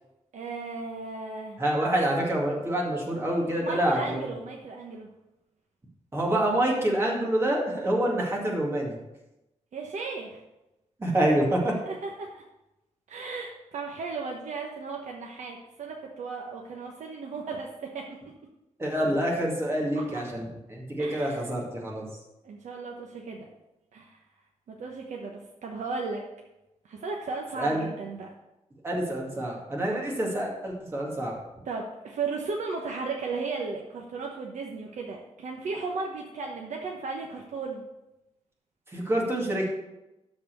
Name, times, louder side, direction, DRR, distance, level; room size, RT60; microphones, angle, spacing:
voice 1, 0.3-1.6 3.6-5.1 9.7-10.4 11.8-12.4 13.1-18.0 19.9-20.0 21.0-21.4 22.4-23.5 23.9-24.2 24.7-26.2 26.8-28.3 31.7-37.8, right 4 dB, 85° right, 0 dB, 1.1 m, -35 dB
voice 2, 1.6-4.2 6.1-8.9 11.0-11.7 18.8-22.1 27.6-27.9 28.8-31.3 38.9-39.6, right 1 dB, 20° right, -2 dB, 2.2 m, -27 dB
12.5 x 4.3 x 6.8 m, 0.95 s
wide cardioid pair, 175°, 12 cm